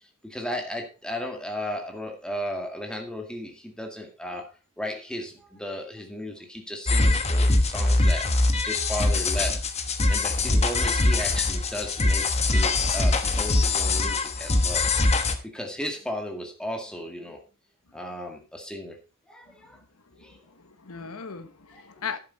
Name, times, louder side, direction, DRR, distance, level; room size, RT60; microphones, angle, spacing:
voice 1, 0.2-4.5 4.8-9.6 10.1-14.9 15.4-17.4 17.9-19.0 19.3-19.8 20.2-20.4 21.7-21.8, left 1 dB, 5° left, 2.0 m, -35 dB
sound 1, 6.9-15.4, left 2 dB, 30° left, 1.1 m, -23 dB
voice 2, 19.5-19.8 20.1-22.2, left 6 dB, 80° left, 1.1 m, -39 dB
11.0 x 8.6 x 4.1 m
head